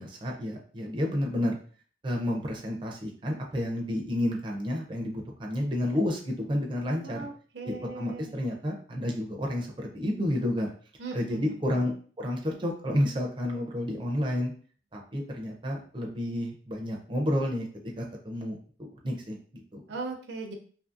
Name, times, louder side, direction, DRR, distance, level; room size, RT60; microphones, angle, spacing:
voice 1, 0.0-1.6 2.0-7.3 7.6-10.7 11.1-11.9 12.2-14.5 14.9-17.7 18.0-18.6 19.0-19.8, left 1 dB, 30° right, 0 dB, 0.4 m, -30 dB
voice 2, 7.0-8.3 11.0-11.8 19.9-20.5, right 4 dB, 80° right, 3 dB, 0.6 m, -39 dB
2.7 x 2.6 x 2.4 m, 0.43 s
head